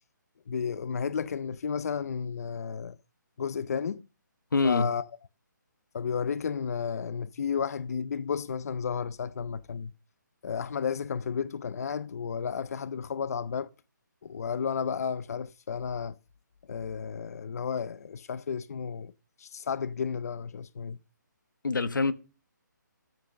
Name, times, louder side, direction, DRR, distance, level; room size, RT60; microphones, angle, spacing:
voice 1, 0.5-3.0 3.4-4.1 4.6-5.1 5.9-9.9 10.4-13.7 14.2-16.2 16.7-19.1 19.4-21.0, left 6 dB, 50° left, 0.5 m, -32 dB
voice 2, 4.5-4.9 21.6-22.1, left 4 dB, 80° left, 1.3 m, -25 dB
12.0 x 7.9 x 6.5 m
hypercardioid pair, 160°, 10 cm